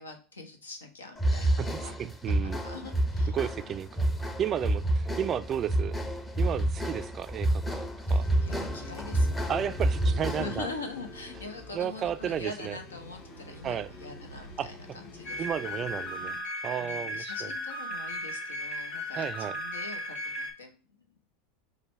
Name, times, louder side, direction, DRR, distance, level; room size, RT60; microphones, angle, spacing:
voice 1, 0.0-1.9 2.3-3.4 8.1-9.6 10.0-14.8 15.1-15.4 16.8-20.8, left 3 dB, 90° left, 5 dB, 0.8 m, -43 dB
sound 1, 1.2-10.7, right 1 dB, 15° left, 0.6 m, -29 dB
voice 2, 1.6-2.6 3.3-4.1 4.4-6.0 6.4-8.3 9.5-10.7 11.7-12.8 13.6-13.9 14.6-14.7 15.4-16.4 16.6-17.5 19.2-19.6, right 9 dB, 35° right, 13 dB, 0.3 m, -33 dB
sound 2, 8.2-16.4, left 2 dB, 35° left, 2.2 m, -46 dB
sound 3, 15.2-20.5, left 1 dB, 60° left, 2.5 m, -36 dB
4.8 x 2.2 x 4.5 m, 0.36 s
hypercardioid pair, 90°, 0 cm